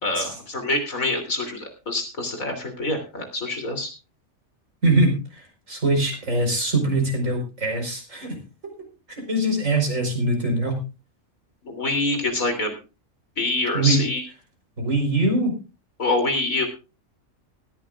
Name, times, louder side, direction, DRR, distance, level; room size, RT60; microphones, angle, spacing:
voice 1, 0.0-3.9 11.7-12.7 13.4-14.2 16.0-16.7, left 2 dB, 85° left, 5 dB, 3.6 m, -25 dB
voice 2, 4.8-8.4 9.1-10.8 13.7-14.0 14.8-15.5, right 2 dB, 70° right, 3 dB, 5.2 m, -23 dB
19.0 x 14.5 x 2.5 m, 0.31 s
omnidirectional pair, 1.4 m